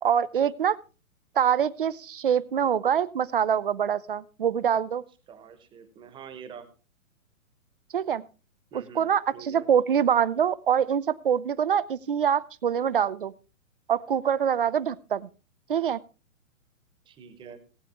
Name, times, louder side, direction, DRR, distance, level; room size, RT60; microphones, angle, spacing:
voice 1, 0.0-0.8 1.4-5.0 7.9-8.2 8.7-13.3 13.9-15.3 15.7-16.0, right 8 dB, 40° right, 19 dB, 0.6 m, -25 dB
voice 2, 5.3-6.7 8.7-9.7 17.1-17.6, right 7 dB, 10° right, 10 dB, 1.2 m, -45 dB
18.5 x 9.4 x 3.4 m, 0.34 s
figure-of-eight pair, 120°, 42 cm